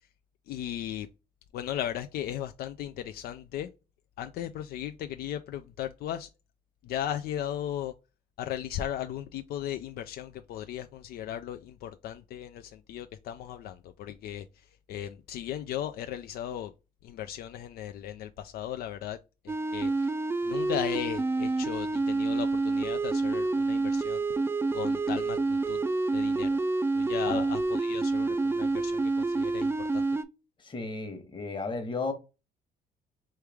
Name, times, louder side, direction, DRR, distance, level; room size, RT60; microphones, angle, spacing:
voice 1, 0.5-1.1 1.5-3.7 4.2-6.3 6.8-7.9 8.4-14.5 14.9-16.7 17.0-19.2 19.4-20.1 20.4-24.2 24.7-25.8 26.1-26.5 26.9-30.1, left 11 dB, 65° left, 0.4 m, -36 dB
sound 1, 19.5-30.2, right 3 dB, 15° right, 0.4 m, -28 dB
voice 2, 30.6-32.1, left 3 dB, 30° left, 1.2 m, -33 dB
3.4 x 3.2 x 3.4 m
cardioid pair, 110°, 17 cm